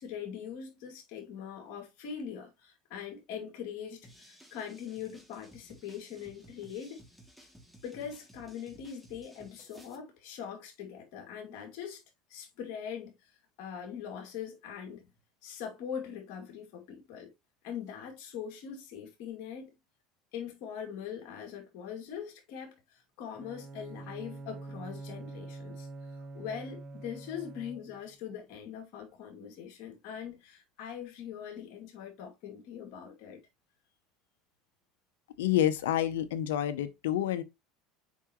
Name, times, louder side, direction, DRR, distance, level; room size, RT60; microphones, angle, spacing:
voice 1, 0.0-7.0 7.4-7.5 7.8-12.0 12.3-13.3 13.6-15.1 15.4-17.3 17.6-19.8 20.3-33.4, left 8 dB, 65° left, 2.5 m, -42 dB
sound 1, 4.0-10.0, right 1 dB, ahead, 2.4 m, -56 dB
Bowed string instrument, 23.3-28.2, right 2 dB, 35° right, 1.0 m, -45 dB
voice 2, 35.4-37.4, left 12 dB, 85° left, 0.7 m, -28 dB
7.2 x 4.8 x 3.0 m
supercardioid pair, 105°, 0 cm